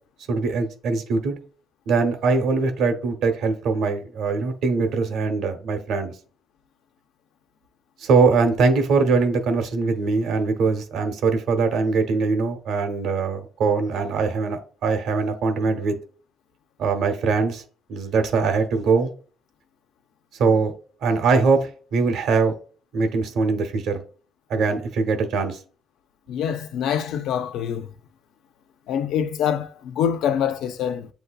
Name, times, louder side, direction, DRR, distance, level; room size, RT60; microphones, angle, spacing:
voice 1, 0.3-1.4 1.9-6.1 8.0-16.0 16.8-17.6 17.9-19.1 20.4-20.7 21.0-22.5 22.9-24.0 24.5-25.6, right 4 dB, 80° right, 0.8 m, -22 dB
voice 2, 26.3-27.9 28.9-31.1, left 9 dB, 85° left, 0.4 m, -25 dB
7.8 x 2.6 x 2.3 m
cardioid pair, 90°, 0 cm